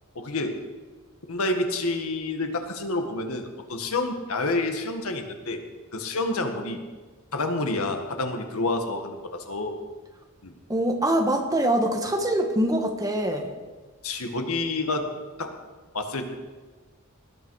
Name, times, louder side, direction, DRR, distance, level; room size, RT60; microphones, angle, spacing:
voice 1, 0.2-0.6 1.3-5.6 5.9-6.8 7.3-9.8 10.4-10.5 14.0-15.1 15.4-15.5 15.9-16.3, left 2 dB, 80° left, 4 dB, 1.7 m, -28 dB
voice 2, 10.7-13.5, right 1 dB, 15° right, 3 dB, 1.5 m, -24 dB
19.5 x 11.5 x 4.8 m, 1.3 s
head